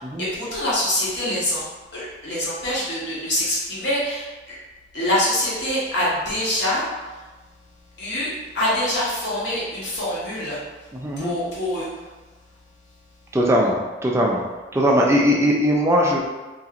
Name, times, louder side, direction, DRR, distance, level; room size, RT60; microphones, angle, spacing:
voice 1, 0.0-1.6 1.9-4.5 4.9-7.3 8.0-12.1, left 1 dB, 65° left, -8 dB, 1.2 m, -25 dB
voice 2, 11.0-11.3 13.3-14.4 14.7-16.2, equal, 15° right, -2 dB, 0.4 m, -19 dB
2.9 x 2.8 x 2.4 m, 1.2 s
head